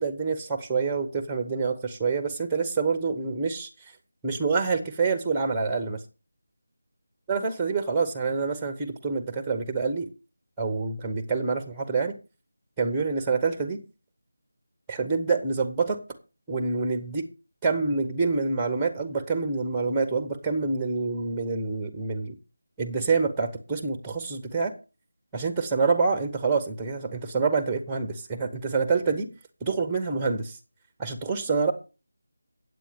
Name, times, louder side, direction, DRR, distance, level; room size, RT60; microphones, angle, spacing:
voice 1, 0.0-3.7 4.2-6.0 7.3-10.1 10.6-12.2 12.8-13.8 14.9-16.0 16.5-17.3 17.6-22.3 22.8-24.7 25.3-29.3 29.6-30.6 31.0-31.7, right 4 dB, 5° right, 6 dB, 0.9 m, -27 dB
9.1 x 8.1 x 5.1 m, 0.31 s
figure-of-eight pair, 170°, 0 cm